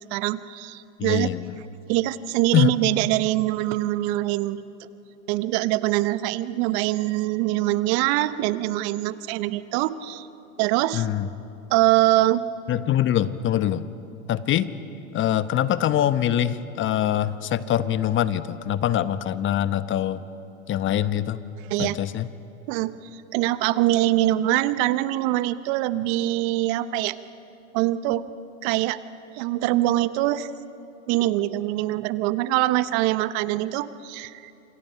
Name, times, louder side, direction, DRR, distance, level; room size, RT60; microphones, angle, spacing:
voice 1, 0.1-1.3 1.9-4.6 5.3-10.3 10.6-11.1 11.7-12.4 21.7-22.0 22.7-27.2 27.7-28.2 28.6-29.0 29.3-30.5 31.1-34.5, right 16 dB, 50° right, 14 dB, 1.1 m, -23 dB
voice 2, 1.0-1.6 2.5-2.7 10.9-11.3 12.7-13.9 14.3-14.7 15.1-20.2 20.7-21.4 21.8-22.3, left 11 dB, 30° left, 13 dB, 1.0 m, -23 dB
27.5 x 27.0 x 5.8 m, 2.8 s
hypercardioid pair, 105°, 40 cm